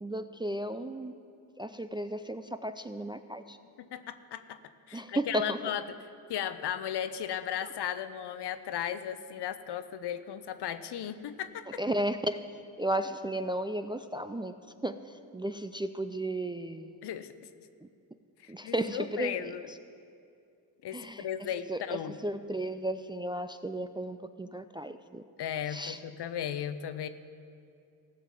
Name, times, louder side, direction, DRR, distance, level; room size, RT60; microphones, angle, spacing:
voice 1, 0.0-1.1 1.6-3.6 4.9-5.6 11.8-12.4 12.8-14.5 14.8-17.0 17.8-17.9 18.5-19.5 20.9-21.3 21.7-25.2 25.7-26.0, right 1 dB, 10° right, 9 dB, 0.4 m, -34 dB
voice 2, 3.8-4.6 4.9-5.8 6.3-11.8 17.0-17.3 18.4-19.7 20.8-22.2 25.4-27.1, left 9 dB, 60° left, 12 dB, 0.7 m, -36 dB
15.0 x 5.7 x 7.3 m, 2.5 s
supercardioid pair, 50°, 44 cm